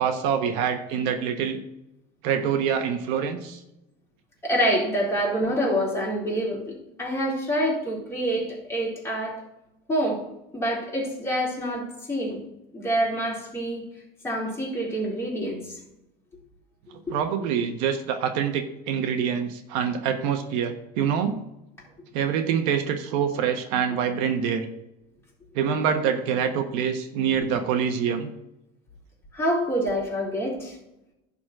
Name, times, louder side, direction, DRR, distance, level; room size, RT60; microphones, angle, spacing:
voice 1, 0.0-1.6 2.2-3.6 17.1-21.4 22.1-24.7 25.5-28.3, right 7 dB, 80° right, 6 dB, 1.3 m, -25 dB
voice 2, 4.4-9.4 9.9-10.2 10.5-12.4 12.7-13.8 14.2-15.8 17.1-17.2 29.3-30.8, equal, 10° left, -5 dB, 3.9 m, -26 dB
11.0 x 4.2 x 7.7 m, 0.86 s
cardioid pair, 145°, 21 cm